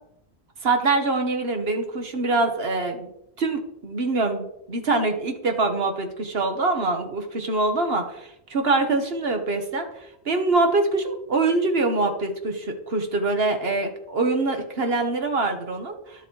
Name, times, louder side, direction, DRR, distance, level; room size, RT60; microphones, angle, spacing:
voice 1, 0.6-3.1 3.4-9.9 10.2-16.3, right 3 dB, 70° right, 5 dB, 1.7 m, -24 dB
12.0 x 6.9 x 4.7 m, 0.82 s
omnidirectional pair, 1.1 m